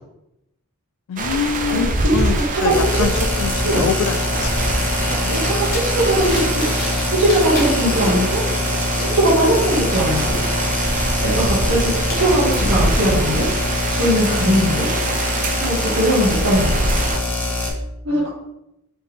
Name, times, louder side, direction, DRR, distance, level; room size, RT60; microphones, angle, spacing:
voice 1, 1.1-3.1 3.4-5.4 18.1-18.3, left 7 dB, 70° left, 0.3 m, -26 dB
sound 1, 1.2-17.2, right 2 dB, 40° right, 0.5 m, -25 dB
voice 2, 1.7-2.9 3.6-3.9 5.3-6.6 7.1-8.4 9.0-10.4 11.2-13.5 13.9-14.9 15.6-17.0 18.0-18.3, equal, 75° right, 1.2 m, -20 dB
sound 2, 2.7-17.7, left 1 dB, 10° left, 0.6 m, -23 dB
sound 3, 5.3-7.0 7.3-10.0 10.5-12.3, left 1 dB, 45° left, 1.2 m, -33 dB
4.4 x 3.1 x 3.2 m
head